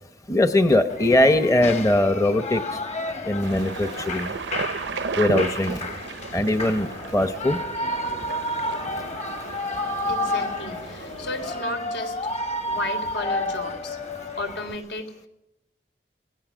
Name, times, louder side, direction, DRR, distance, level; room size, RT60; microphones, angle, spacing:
voice 1, 0.3-2.6 3.3-4.3 5.2-5.8 6.3-7.6, left 1 dB, 20° left, 8 dB, 0.8 m, -21 dB
Shout / Cheering, 0.9-14.8, left 1 dB, 35° left, 1.7 m, -31 dB
sound 1, 3.4-11.6, right 4 dB, 90° right, 0.7 m, -34 dB
voice 2, 10.1-12.2 12.7-14.0 14.4-15.1, left 2 dB, 80° left, 6 dB, 3.7 m, -33 dB
27.0 x 17.5 x 6.2 m, 0.88 s
head